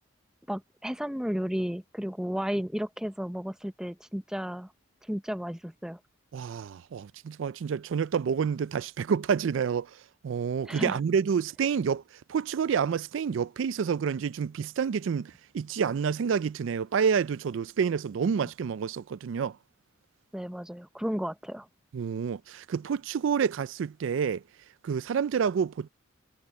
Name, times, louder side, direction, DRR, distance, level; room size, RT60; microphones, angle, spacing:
voice 1, 0.5-4.7 5.1-6.0 10.7-11.0 20.3-21.7, equal, 5° right, 0.6 m, -33 dB
voice 2, 6.3-10.0 10.2-12.0 12.3-19.6 21.9-24.4 24.8-25.9, right 6 dB, 75° right, 0.4 m, -28 dB
head